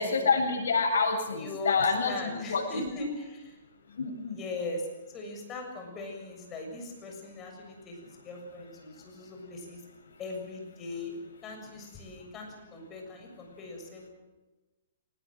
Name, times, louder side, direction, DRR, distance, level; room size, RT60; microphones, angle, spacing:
voice 1, 0.0-2.8 4.0-4.3, left 4 dB, 85° left, 2 dB, 7.8 m, -27 dB
voice 2, 1.4-3.6 4.3-9.8 10.2-11.1 11.4-14.1, left 2 dB, 20° left, 3 dB, 7.0 m, -40 dB
23.5 x 20.0 x 7.8 m, 1.1 s
hypercardioid pair, 155°, 0 cm